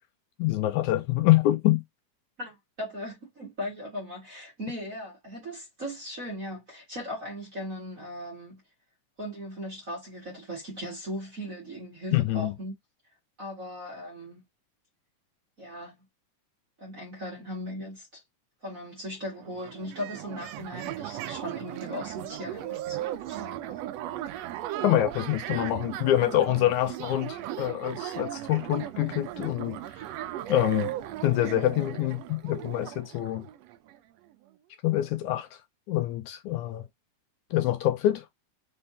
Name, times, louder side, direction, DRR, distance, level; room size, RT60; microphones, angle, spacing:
voice 1, 0.4-1.8 12.1-12.5 24.8-29.8 30.5-30.9 31.2-33.5 34.8-35.5 35.9-36.8 37.5-38.3, left 14 dB, 80° left, 1.9 m, -25 dB
voice 2, 2.4-8.6 9.2-12.7 13.4-14.4 15.6-16.0 16.8-18.2 18.6-23.8 27.3-27.5, equal, 35° right, 1.6 m, -38 dB
sound 1, 19.1-19.2 19.4-34.0, right 13 dB, 85° right, 1.4 m, -37 dB
5.2 x 3.5 x 2.7 m
omnidirectional pair, 3.7 m